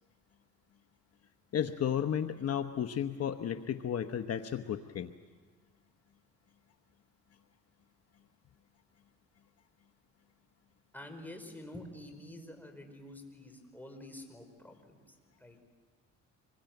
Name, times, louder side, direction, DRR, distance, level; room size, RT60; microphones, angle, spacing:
voice 1, 1.5-5.1, left 9 dB, 55° left, 8 dB, 1.0 m, -33 dB
voice 2, 10.9-15.6, left 1 dB, 5° left, 4 dB, 5.1 m, -48 dB
26.0 x 22.0 x 9.2 m, 1.4 s
cardioid pair, 90°, 30 cm